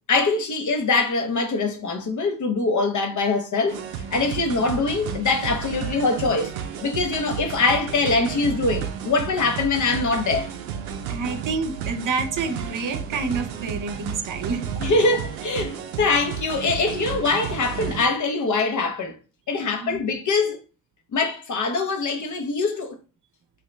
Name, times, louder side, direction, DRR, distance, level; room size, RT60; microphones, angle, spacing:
voice 1, 0.1-3.8 4.1-6.5 6.8-10.5 14.8-19.1 19.5-20.6 21.1-23.0, left 3 dB, 45° left, 0.9 m, -23 dB
sound 1, 3.7-18.1, right 7 dB, 90° right, 0.5 m, -32 dB
voice 2, 11.1-14.6 19.6-20.0, right 4 dB, 50° right, 0.8 m, -28 dB
2.9 x 2.7 x 3.2 m
hypercardioid pair, 45°, 41 cm